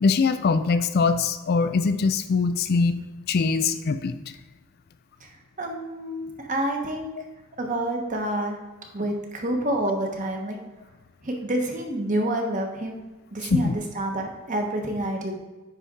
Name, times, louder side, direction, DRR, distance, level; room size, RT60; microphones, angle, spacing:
voice 1, 0.0-3.0 3.3-4.2 13.5-13.8, left 4 dB, 45° left, 11 dB, 0.3 m, -22 dB
voice 2, 5.6-7.1 7.6-8.6 8.9-10.6 11.2-13.0 13.3-15.3, right 1 dB, 35° right, 2 dB, 1.0 m, -28 dB
9.5 x 4.1 x 3.7 m, 1.2 s
head